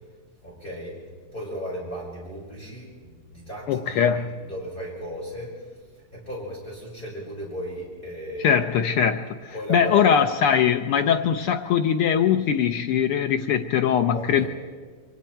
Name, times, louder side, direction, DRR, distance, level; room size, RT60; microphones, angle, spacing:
voice 1, 0.4-1.0 1.3-5.7 6.0-8.7 9.5-10.2 14.1-14.5, equal, 15° left, -5 dB, 5.3 m, -35 dB
voice 2, 3.7-4.4 8.4-14.5, left 8 dB, 80° left, 6 dB, 1.3 m, -21 dB
26.0 x 24.0 x 4.5 m, 1.5 s
omnidirectional pair, 3.3 m